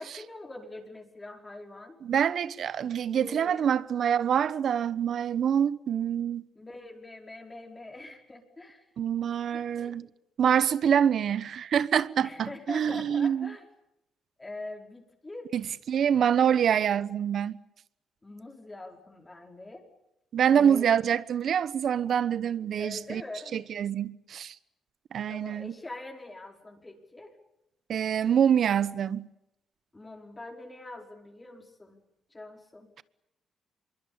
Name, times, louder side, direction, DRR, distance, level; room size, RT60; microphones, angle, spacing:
voice 1, 0.0-2.0 3.1-3.7 6.5-8.9 9.5-10.0 12.2-13.7 14.4-15.5 18.2-19.8 20.5-20.9 22.8-23.6 25.3-27.3 29.9-32.0 32.3-32.9, left 2 dB, 20° left, 5.0 m, -43 dB
voice 2, 2.0-6.5 9.0-10.1 10.4-13.5 15.5-17.6 20.3-23.2 23.5-24.5 25.1-25.7 27.9-29.3, right 8 dB, 60° right, 1.1 m, -26 dB
25.0 x 23.0 x 8.7 m
cardioid pair, 90°, 0 cm